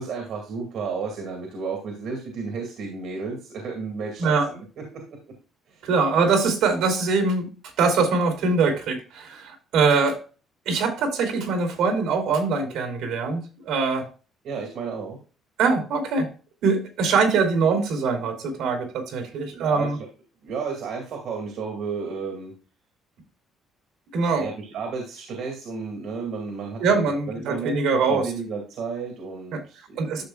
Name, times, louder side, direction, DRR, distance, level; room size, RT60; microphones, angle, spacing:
voice 1, 0.0-5.0 5.7-5.9 14.4-15.2 19.5-20.0 20.4-22.5 24.3-30.0, right 5 dB, 65° right, 2 dB, 2.2 m, -33 dB
voice 2, 5.8-7.5 7.8-10.2 10.6-14.0 15.6-16.3 16.6-20.0 24.1-24.5 26.8-28.3 29.5-29.6 30.0-30.2, right 4 dB, 80° right, 3 dB, 3.0 m, -23 dB
12.0 x 6.7 x 2.3 m, 0.35 s
cardioid pair, 150°, 0 cm